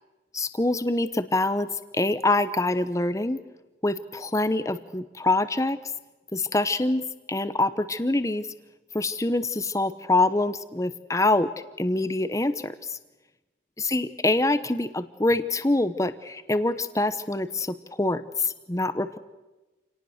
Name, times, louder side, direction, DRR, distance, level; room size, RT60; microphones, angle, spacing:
voice 1, 0.3-1.7 1.9-3.4 3.8-5.8 6.3-7.0 7.3-8.5 8.9-11.5 11.8-13.0 13.8-19.2, left 2 dB, 15° left, 12 dB, 0.9 m, -25 dB
28.0 x 18.5 x 6.5 m, 1.1 s
head